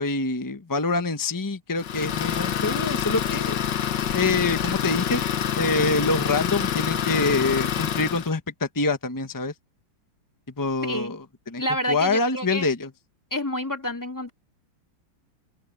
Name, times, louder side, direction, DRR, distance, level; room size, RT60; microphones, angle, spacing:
voice 1, 0.0-3.6 4.1-5.2 5.6-9.5 10.6-11.6 11.9-12.9, left 3 dB, 30° left, 0.3 m, -25 dB
Idling, 1.8-8.3, left 9 dB, 65° left, 1.7 m, -26 dB
voice 2, 10.8-11.2 11.6-12.7 13.3-14.3, left 1 dB, 10° left, 2.9 m, -29 dB
open air
omnidirectional pair, 2.2 m